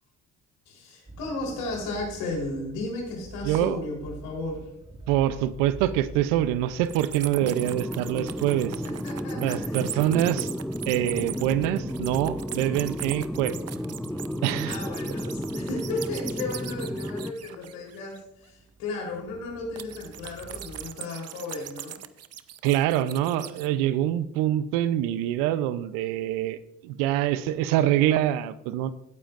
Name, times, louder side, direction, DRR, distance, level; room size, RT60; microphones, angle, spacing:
voice 1, 0.7-4.7 8.9-10.2 14.6-22.0, left 2 dB, 85° left, -1 dB, 3.9 m, -34 dB
sound 1, 1.1-20.9, right 3 dB, 15° right, 1.8 m, -47 dB
voice 2, 3.4-3.8 5.1-8.7 9.4-10.5 10.9-13.6 14.4-14.7 22.6-26.6 26.8-28.9, right 12 dB, 85° right, 14 dB, 0.7 m, -25 dB
sound 2, 6.8-18.2 19.8-23.7, right 11 dB, 50° right, 0.7 m, -40 dB
sound 3, 7.4-17.3, equal, ahead, 0.5 m, -33 dB
16.0 x 9.1 x 2.6 m, 0.80 s
supercardioid pair, 60°, 33 cm